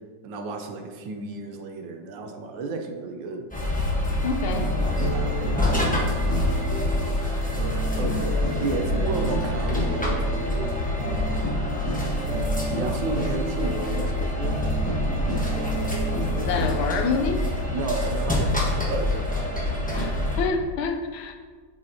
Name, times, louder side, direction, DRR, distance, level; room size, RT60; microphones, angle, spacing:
voice 1, 0.2-3.5 4.8-6.1 6.8-7.3 7.9-11.6 12.7-14.6 17.7-20.1, right 3 dB, 70° right, 4 dB, 1.4 m, -33 dB
sound 1, 3.5-20.5, left 1 dB, 5° left, 0.6 m, -26 dB
voice 2, 4.2-4.7 16.4-17.4 20.0-21.3, left 4 dB, 85° left, 6 dB, 1.5 m, -27 dB
sound 2, 4.5-16.8, equal, 55° right, 2.2 m, -31 dB
7.7 x 7.5 x 2.8 m, 1.5 s
omnidirectional pair, 2.2 m